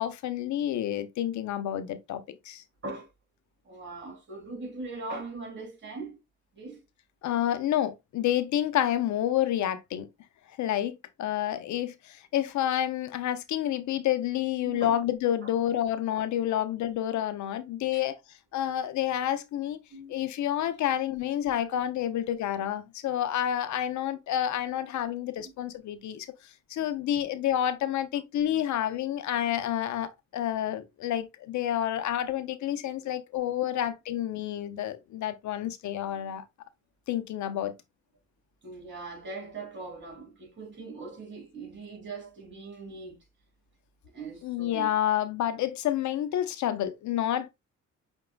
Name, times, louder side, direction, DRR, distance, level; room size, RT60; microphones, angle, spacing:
voice 1, 0.0-2.6 7.2-10.1 10.6-18.1 18.5-19.8 20.1-26.3 26.7-36.4 37.1-37.7 44.4-47.5, left 11 dB, 70° left, 0.7 m, -29 dB
voice 2, 3.6-6.2 6.5-6.8 14.6-14.9 17.9-18.0 19.9-20.2 21.7-21.8 25.0-25.1 25.4-25.5 27.2-27.3 38.6-43.2 44.1-44.9, right 3 dB, 40° right, 3.2 m, -40 dB
5.9 x 3.7 x 2.3 m
cardioid pair, 90°, 30 cm